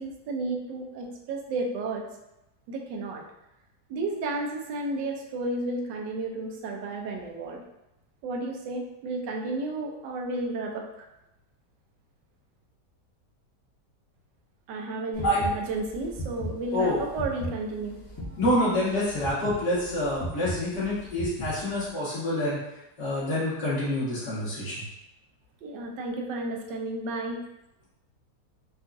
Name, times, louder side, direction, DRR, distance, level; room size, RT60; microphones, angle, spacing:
voice 1, 0.0-2.0 2.7-3.2 3.9-7.6 8.2-11.1 14.7-18.4 25.6-27.4, right 2 dB, 85° right, 1 dB, 1.3 m, -32 dB
sound 1, 15.1-21.9, equal, 20° left, 0.8 m, -36 dB
voice 2, 16.7-17.0 18.4-22.6 23.0-24.8, left 1 dB, 70° left, -10 dB, 2.1 m, -27 dB
4.7 x 2.4 x 2.5 m, 0.91 s
omnidirectional pair, 1.8 m